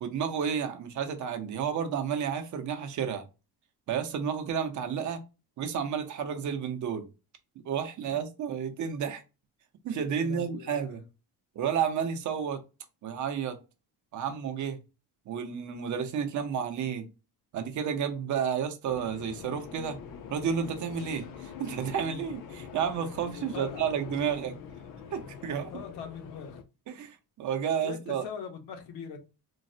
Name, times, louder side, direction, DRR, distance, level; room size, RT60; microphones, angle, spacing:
voice 1, 0.0-3.2 3.9-5.2 5.6-7.1 7.6-9.2 9.8-11.0 11.6-12.6 13.0-13.6 14.1-14.8 15.3-17.1 17.5-20.0 20.3-24.6 25.1-25.7 26.9-28.3, right 7 dB, 50° right, 0.6 m, -31 dB
voice 2, 10.2-11.0 23.5-24.0 25.7-26.6 27.8-29.2, left 6 dB, 80° left, 1.0 m, -42 dB
sound 1, 18.8-26.6, left 7 dB, 55° left, 0.5 m, -44 dB
3.9 x 2.0 x 2.5 m
cardioid pair, 175°, 39 cm